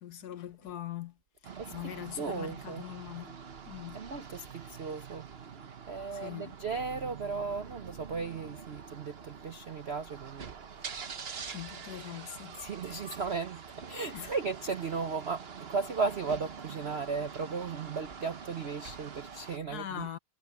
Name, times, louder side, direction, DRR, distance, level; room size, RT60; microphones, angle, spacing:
voice 1, 0.0-1.2 1.4-3.4 3.6-4.0 6.1-6.6 11.5-12.6 14.1-14.3 19.7-20.2, left 11 dB, 55° left, 1.4 m, -42 dB
sound 1, 1.4-19.6, right 6 dB, 40° right, 0.9 m, -45 dB
voice 2, 1.6-2.9 3.9-5.3 5.9-10.5 10.8-10.9 12.6-20.1, right 4 dB, 80° right, 0.5 m, -36 dB
omnidirectional pair, 2.3 m